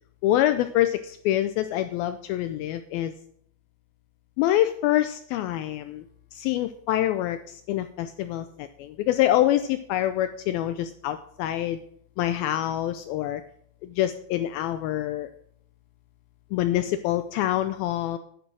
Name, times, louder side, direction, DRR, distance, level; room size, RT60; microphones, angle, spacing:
voice 1, 0.2-3.1 4.4-6.1 6.3-11.8 12.2-13.4 13.8-15.3 16.5-18.2, left 13 dB, 80° left, 10 dB, 2.2 m, -26 dB
10.0 x 8.8 x 6.1 m, 0.67 s
omnidirectional pair, 4.7 m